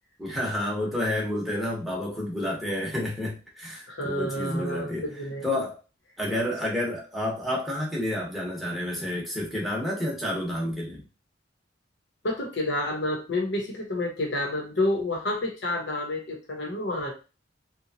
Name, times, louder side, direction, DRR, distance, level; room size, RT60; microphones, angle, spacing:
voice 1, 0.2-5.1 5.4-5.8 6.2-11.0, left 1 dB, ahead, -4 dB, 0.9 m, -30 dB
voice 2, 3.9-5.6 12.2-17.1, left 1 dB, 70° left, 0 dB, 1.0 m, -29 dB
2.9 x 2.3 x 2.7 m, 0.32 s
head